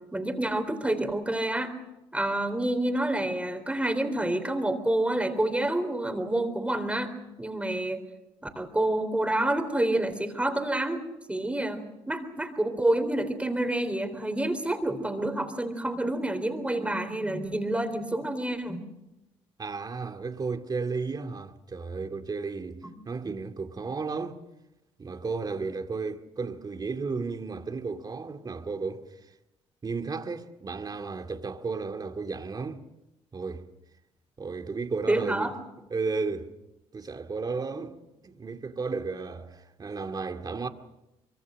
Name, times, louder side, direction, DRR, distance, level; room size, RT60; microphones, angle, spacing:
voice 1, 0.1-1.8 2.1-7.1 7.4-8.0 8.4-11.0 11.3-18.9 35.1-35.5, right 1 dB, 10° right, 3.7 m, -28 dB
voice 2, 19.6-24.4 25.0-29.0 29.8-32.8 33.3-33.7 34.4-35.5 35.9-36.5 36.9-38.0 38.2-40.7, right 4 dB, 35° right, 2.2 m, -33 dB
24.5 x 23.5 x 6.4 m
supercardioid pair, 75°, 11 cm